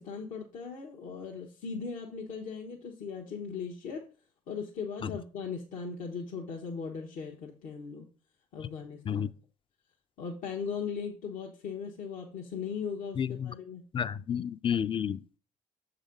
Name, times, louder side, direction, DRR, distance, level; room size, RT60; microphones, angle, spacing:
voice 1, 0.0-4.0 4.5-8.1 8.5-9.3 10.2-13.8, left 5 dB, 75° left, 1.1 m, -38 dB
voice 2, 13.2-13.5 13.9-15.2, left 8 dB, 40° left, 0.4 m, -31 dB
7.0 x 4.1 x 5.1 m
supercardioid pair, 60°, 14 cm